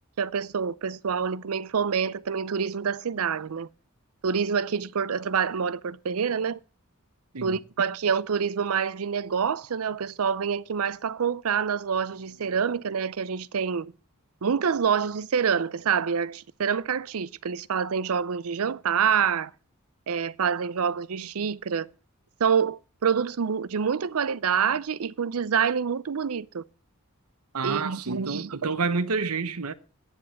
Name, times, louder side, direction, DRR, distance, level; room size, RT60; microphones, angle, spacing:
voice 1, 0.2-3.7 4.2-6.6 7.4-13.9 14.4-19.5 20.1-21.9 22.4-26.6 27.6-28.7, right 6 dB, 70° right, 0.5 m, -27 dB
voice 2, 27.5-29.7, right 4 dB, 85° right, 0.9 m, -29 dB
9.5 x 7.7 x 7.0 m
head